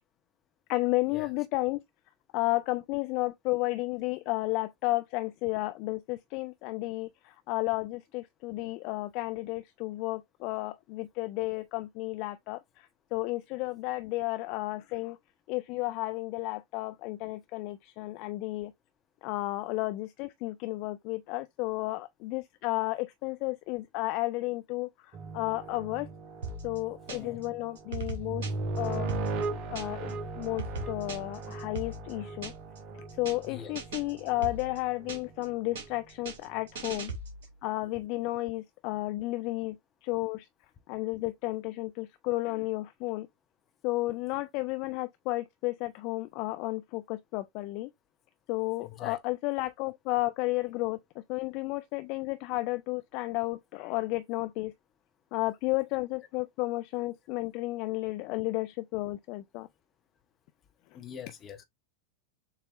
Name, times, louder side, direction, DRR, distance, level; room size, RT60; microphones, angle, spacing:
voice 1, 0.7-1.8 2.3-15.2 15.5-18.7 19.2-26.1 26.6-28.5 28.8-29.1 29.5-32.5 33.2-37.1 37.6-39.8 40.0-40.5 40.9-43.3 43.8-47.9 48.5-54.7 55.3-59.7, left 20 dB, 45° left, 0.3 m, -32 dB
sound 1, 25.1-35.3 35.7-35.9 36.6-36.7, right 3 dB, 40° right, 0.7 m, -38 dB
sound 2, 26.4-27.5 27.8-30.1 30.4-32.8 33.1-33.5 33.8-35.5 35.8-37.6, right 3 dB, 55° right, 2.1 m, -39 dB
voice 2, 27.1-27.4 33.5-33.7 48.8-49.2 60.9-61.6, left 9 dB, 25° left, 1.0 m, -43 dB
6.8 x 2.9 x 2.5 m
figure-of-eight pair, 90°, 0 cm